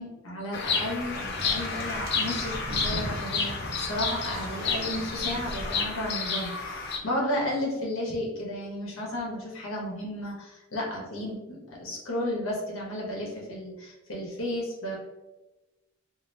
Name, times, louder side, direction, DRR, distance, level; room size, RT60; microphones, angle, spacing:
voice 1, 0.0-15.0, left 1 dB, 75° left, -3 dB, 0.8 m, -33 dB
Bird vocalization bird call bird song, 0.5-7.0, left 4 dB, 55° left, 0.5 m, -31 dB
sound 1, 0.5-5.8, right 1 dB, 80° right, 0.5 m, -39 dB
3.1 x 2.5 x 2.6 m, 1.1 s
head